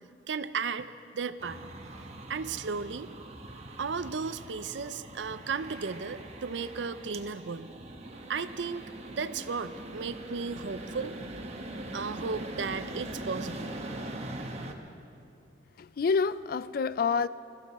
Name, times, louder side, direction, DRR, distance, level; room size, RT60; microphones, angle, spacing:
voice 1, 0.3-3.1 3.8-7.7 8.3-11.2 11.9-13.7, right 5 dB, 75° right, 0.6 m, -35 dB
sound 1, 1.4-14.7, right 1 dB, 35° right, 1.1 m, -42 dB
voice 2, 15.8-17.3, left 5 dB, 50° left, 0.3 m, -27 dB
22.5 x 14.0 x 4.2 m
head